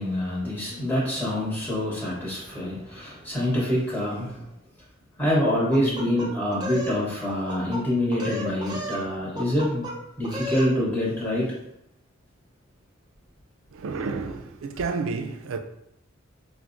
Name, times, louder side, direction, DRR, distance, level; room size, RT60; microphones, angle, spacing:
voice 1, 0.0-4.4 5.2-9.9 10.2-11.5, left 1 dB, 10° left, 1.1 m, -26 dB
sound 1, 5.7-7.0 7.3-7.8 8.1-9.0 9.4-9.9 10.2-10.7, left 1 dB, 20° right, 0.6 m, -33 dB
voice 2, 13.7-15.6, right 4 dB, 70° right, 0.3 m, -30 dB
4.5 x 2.1 x 2.5 m
head